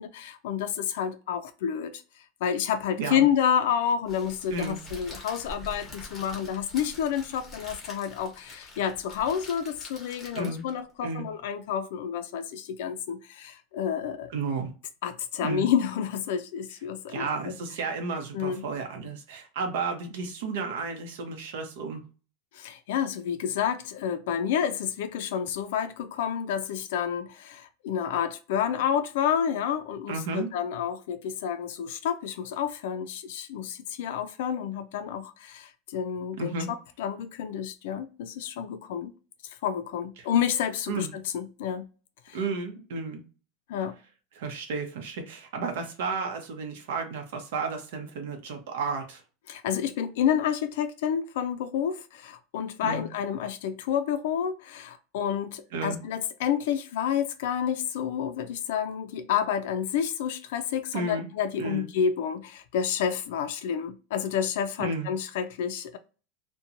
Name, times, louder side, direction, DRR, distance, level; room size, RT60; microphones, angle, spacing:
voice 1, 0.0-2.0 2.4-14.3 15.0-17.5 18.3-18.6 22.5-39.1 39.4-41.9 42.3-42.4 43.7-44.0 49.5-66.0, left 8 dB, 65° left, 0.3 m, -29 dB
Crackle, 4.1-10.8, left 1 dB, 10° left, 0.8 m, -45 dB
voice 2, 10.3-10.7 11.0-11.3 14.3-14.7 15.4-15.7 17.1-22.0 30.1-30.5 36.4-36.7 40.2-40.3 40.9-41.1 42.3-43.2 44.3-49.2 52.8-53.1 55.7-56.0 60.9-61.3 61.6-61.9 64.8-65.1, right 4 dB, 70° right, 0.7 m, -32 dB
2.8 x 2.1 x 2.5 m
supercardioid pair, 175°, 0 cm